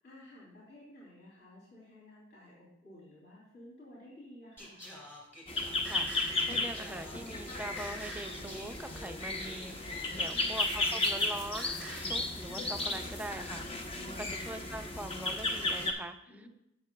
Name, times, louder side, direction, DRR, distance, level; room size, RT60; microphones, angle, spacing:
voice 1, 0.0-4.8 10.0-10.6 13.9-14.3 16.3-16.5, left 1 dB, 55° left, -8 dB, 3.0 m, -53 dB
Singing, 4.6-12.2, equal, 10° left, 2.0 m, -48 dB
sound 1, 5.5-15.9, left 2 dB, 30° left, 0.8 m, -34 dB
voice 2, 5.8-13.9 14.2-16.5, right 1 dB, 5° right, 6 dB, 0.4 m, -43 dB
sound 2, 10.5-15.8, left 2 dB, 75° left, 2.1 m, -53 dB
11.0 x 7.6 x 2.3 m, 0.82 s
head